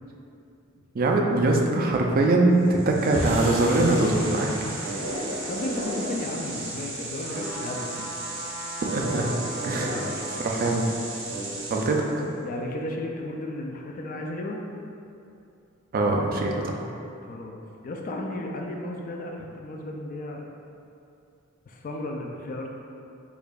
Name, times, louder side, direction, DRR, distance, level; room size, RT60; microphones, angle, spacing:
voice 1, 0.9-4.7 8.9-9.3 9.6-10.0 10.4-10.9 11.7-12.3 15.9-16.9, right 2 dB, 45° right, 1 dB, 0.3 m, -22 dB
sound 1, 2.6-12.2, right 1 dB, 80° right, 0.7 m, -34 dB
sound 2, 3.1-9.5, equal, 20° right, 1.0 m, -38 dB
voice 2, 5.5-8.1 9.7-10.4 12.4-14.6 17.2-20.4 21.7-22.7, left 1 dB, 40° left, 1 dB, 0.3 m, -34 dB
sound 3, 7.2-10.9 11.4-11.5, right 1 dB, 60° left, 1.3 m, -39 dB
4.6 x 2.5 x 2.3 m, 2.6 s
head